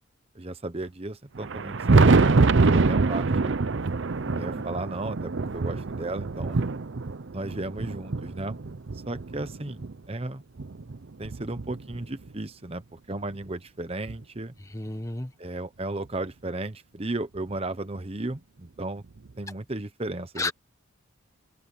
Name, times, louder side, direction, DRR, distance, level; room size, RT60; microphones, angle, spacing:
voice 1, 0.3-3.6 4.4-6.6 7.3-8.6 8.9-10.4 11.2-14.5 15.4-19.0 19.4-20.5, right 2 dB, 30° right, 1.0 m, -35 dB
Thunder, 1.4-9.9 10.6-12.3 13.4-13.5 14.1-14.2 16.1-16.2 17.5-17.6 19.2-19.3, right 3 dB, 60° right, 0.6 m, -25 dB
voice 2, 14.7-15.3 20.4-20.5, left 2 dB, 15° left, 1.4 m, -31 dB
head